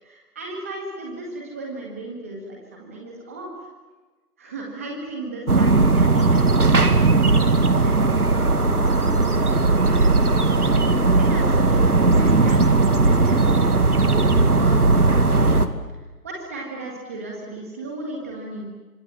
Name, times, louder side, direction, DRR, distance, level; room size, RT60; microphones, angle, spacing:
voice 1, 0.0-3.5 4.4-7.2 7.8-8.8 9.5-15.6 16.2-18.7, right 2 dB, 10° right, -1 dB, 1.7 m, -36 dB
sound 1, 5.5-15.7, right 3 dB, 70° right, 2.2 m, -17 dB
28.0 x 25.5 x 7.4 m, 1.2 s
figure-of-eight pair, 160°, 46 cm